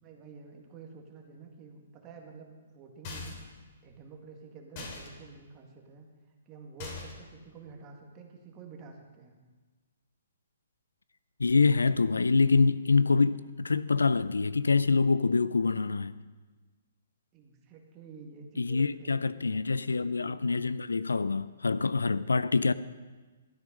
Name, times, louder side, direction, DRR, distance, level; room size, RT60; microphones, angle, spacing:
voice 1, 0.0-3.4 3.8-6.1 6.5-9.3 17.3-19.7, right 5 dB, 25° right, 1.9 m, -49 dB
sound 1, 3.0-3.6 4.8-5.1 6.8-7.3, left 4 dB, 40° left, 2.9 m, -41 dB
voice 2, 11.4-16.1 18.6-22.7, left 4 dB, 85° left, 0.4 m, -25 dB
13.0 x 9.2 x 5.2 m
figure-of-eight pair, 130°, 0 cm